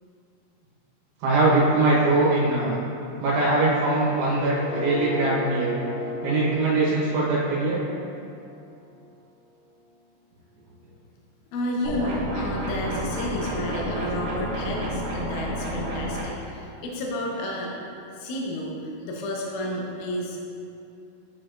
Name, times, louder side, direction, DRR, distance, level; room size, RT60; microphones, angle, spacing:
voice 1, 1.2-2.8 3.2-5.7 6.2-7.8, right 2 dB, 80° right, -8 dB, 3.1 m, -22 dB
sound 1, 3.1-9.1, left 2 dB, 60° left, 1.5 m, -36 dB
voice 2, 11.5-17.8 18.2-20.4, left 1 dB, 80° left, -2 dB, 1.7 m, -31 dB
sound 2, 11.8-16.2, equal, 60° right, 1.9 m, -30 dB
9.3 x 5.1 x 2.5 m, 2.5 s
omnidirectional pair, 4.7 m